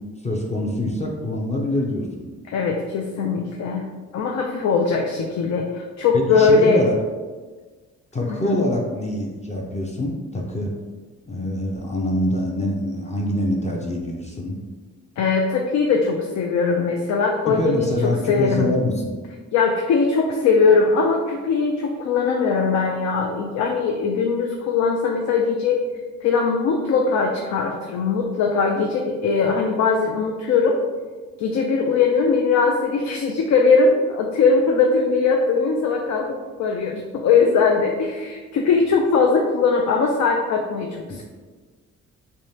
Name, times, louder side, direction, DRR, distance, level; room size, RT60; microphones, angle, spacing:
voice 1, 0.2-2.3 6.1-6.9 8.1-10.7 11.3-14.6 17.5-19.1, left 1 dB, 25° left, -1 dB, 0.5 m, -25 dB
voice 2, 2.5-3.8 4.1-6.8 8.2-8.6 15.2-18.7 19.5-25.8 26.2-30.8 31.4-41.2, left 4 dB, 65° left, 1 dB, 0.5 m, -20 dB
3.4 x 3.1 x 2.8 m, 1.4 s
cardioid pair, 90°, 30 cm